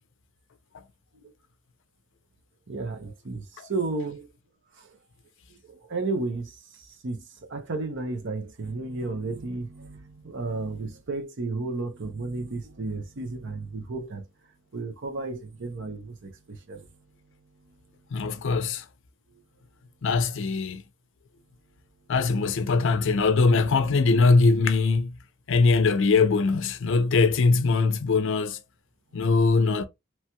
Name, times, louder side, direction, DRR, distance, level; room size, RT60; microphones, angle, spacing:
voice 1, 2.7-4.3 4.8-4.9 5.5-7.2 7.5-14.2 14.7-16.9, right 3 dB, 60° right, 0.7 m, -33 dB
voice 2, 18.1-18.8 20.0-20.8 22.1-25.1 25.5-28.6 29.1-29.9, left 4 dB, 65° left, 0.5 m, -21 dB
3.0 x 2.9 x 2.2 m
head